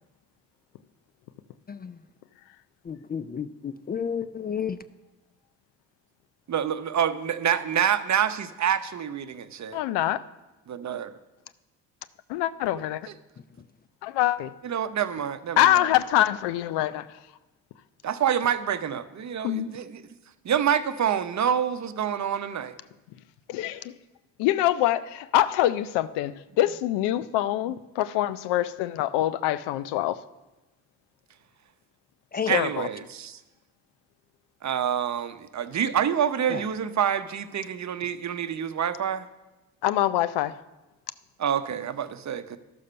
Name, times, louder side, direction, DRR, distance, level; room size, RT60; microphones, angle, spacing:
voice 1, 2.9-4.8 32.3-32.5 36.5-36.6, left 7 dB, 25° left, 14 dB, 0.4 m, -31 dB
voice 2, 6.5-9.8 10.7-11.1 14.6-15.9 18.0-20.0 20.4-22.7 32.5-33.4 34.6-39.3 41.4-42.6, right 9 dB, 45° right, 12 dB, 0.8 m, -27 dB
voice 3, 9.7-10.2 12.3-13.1 14.0-14.5 15.6-17.1 19.4-19.7 23.5-23.9 24.4-30.2 32.5-32.9 39.8-40.6, left 13 dB, 75° left, 16 dB, 0.5 m, -25 dB
12.0 x 6.6 x 5.5 m, 1.1 s
hypercardioid pair, 50°, 41 cm